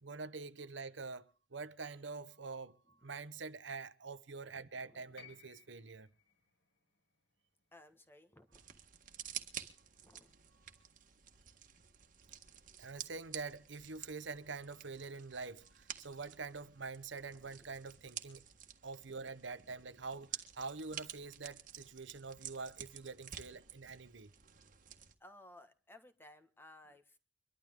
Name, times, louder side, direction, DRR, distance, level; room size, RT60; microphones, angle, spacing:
voice 1, 0.0-6.1 12.8-18.4 18.8-24.3, right 4 dB, 85° right, 1.0 m, -46 dB
voice 2, 4.8-5.3 7.7-8.6 10.0-10.3 17.3-17.7 25.2-27.2, left 1 dB, 10° left, 1.5 m, -59 dB
sound 1, 5.2-9.3 10.5-10.6, left 6 dB, 75° left, 5.2 m, -63 dB
sound 2, 8.5-25.1, right 9 dB, 50° right, 1.6 m, -51 dB
24.5 x 12.0 x 3.7 m
head